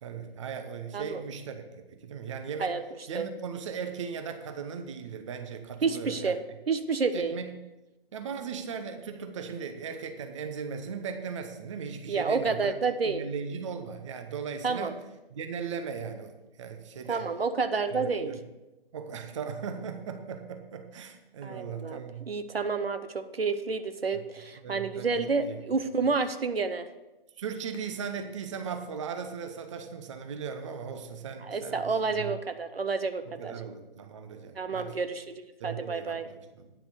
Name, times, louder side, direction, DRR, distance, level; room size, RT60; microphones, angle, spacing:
voice 1, 0.0-2.8 3.1-6.4 7.1-7.5 8.1-12.8 13.0-15.0 15.3-17.3 17.9-18.4 18.9-22.3 24.6-25.6 27.4-32.4 33.3-35.0 35.6-36.7, right 6 dB, 30° right, 7 dB, 0.8 m, -38 dB
voice 2, 0.9-1.2 2.6-2.8 3.1-3.3 5.8-6.4 6.7-7.4 12.1-13.2 14.6-14.9 17.1-18.3 21.4-26.9 31.4-33.5 34.6-36.3, right 4 dB, 75° right, 10 dB, 0.8 m, -29 dB
9.5 x 5.6 x 6.7 m, 1.0 s
figure-of-eight pair, 140°, 30 cm